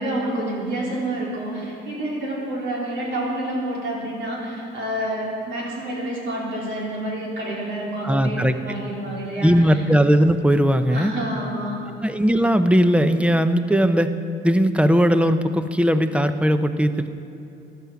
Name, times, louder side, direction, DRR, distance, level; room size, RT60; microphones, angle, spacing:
voice 1, 0.0-9.8 10.9-11.9, right 1 dB, 70° right, -4 dB, 4.2 m, -28 dB
voice 2, 8.0-8.8 9.4-11.1 12.0-14.1 14.4-17.1, equal, 5° right, 10 dB, 0.7 m, -18 dB
15.0 x 11.5 x 5.8 m, 2.8 s
cardioid pair, 90°, 20 cm